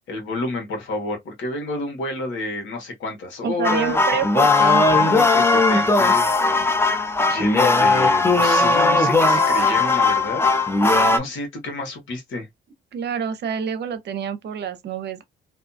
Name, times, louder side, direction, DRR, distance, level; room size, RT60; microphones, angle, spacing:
voice 1, 0.1-4.0 4.9-6.7 7.3-10.4 11.1-12.5, left 2 dB, 80° left, 1.2 m, -30 dB
voice 2, 3.4-5.1 12.9-15.2, right 7 dB, 60° right, 0.7 m, -27 dB
sound 1, 3.6-11.2, left 3 dB, 10° left, 0.5 m, -18 dB
2.6 x 2.3 x 2.6 m
cardioid pair, 90°, 20 cm